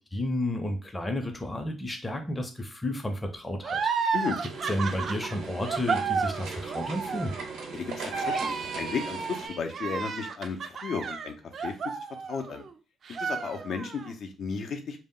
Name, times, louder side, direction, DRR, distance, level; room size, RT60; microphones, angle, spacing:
voice 1, 0.1-4.1 4.7-7.3, left 1 dB, 15° left, 4 dB, 0.6 m, -32 dB
sound 1, 3.6-12.7 13.1-14.1, right 5 dB, 55° right, 0.3 m, -32 dB
sound 2, 4.5-9.5, right 4 dB, 90° right, 0.8 m, -37 dB
voice 2, 7.7-11.3 11.6-11.7 12.3-12.6 13.2-15.0, left 5 dB, 65° left, 5 dB, 0.5 m, -34 dB
2.1 x 2.0 x 3.6 m, 0.32 s
cardioid pair, 90°, 0 cm